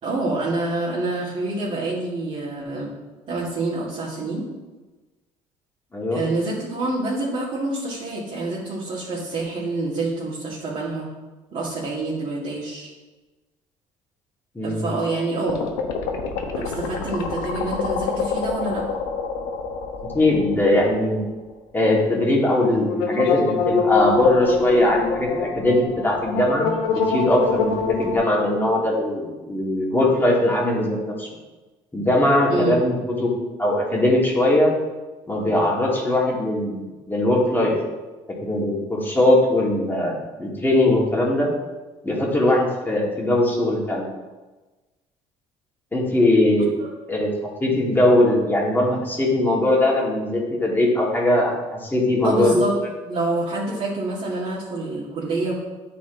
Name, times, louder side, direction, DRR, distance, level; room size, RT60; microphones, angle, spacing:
voice 1, 0.0-2.9 3.3-4.5 6.1-11.1 11.5-12.9 14.6-15.6 16.5-18.9 32.5-32.8 52.2-52.8 53.1-55.5, right 2 dB, 50° right, -9 dB, 2.2 m, -27 dB
sound 1, 15.5-21.2 21.5-21.6 22.9-28.1, left 5 dB, 90° left, 1.0 m, -25 dB
voice 2, 20.1-21.3 21.7-31.3 31.9-33.3 33.6-34.7 35.3-36.8 37.1-37.7 38.4-41.5 42.0-44.0 45.9-46.7 47.1-47.3 47.6-51.5 51.8-52.6, left 1 dB, 15° left, -3 dB, 2.2 m, -20 dB
9.4 x 4.3 x 4.0 m, 1.2 s
supercardioid pair, 85°, 13 cm